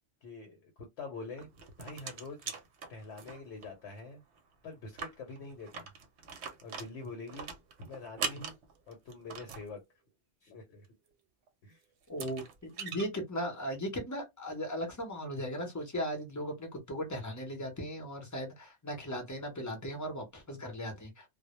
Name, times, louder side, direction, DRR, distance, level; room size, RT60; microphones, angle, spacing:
voice 1, 0.2-1.5 1.8-2.5 2.9-4.2 4.6-5.9 6.6-7.5 7.8-8.6 8.9-9.8 10.4-10.9 11.6-11.8, left 3 dB, 70° left, 0.9 m, -45 dB
sound 1, 1.4-3.7 4.0-4.1 4.4-4.5 4.8-9.7 11.5-11.6 12.0-13.1, right 6 dB, 70° right, 0.8 m, -41 dB
voice 2, 12.1-21.3, equal, 20° left, 0.5 m, -37 dB
2.1 x 2.0 x 2.9 m
omnidirectional pair, 1.3 m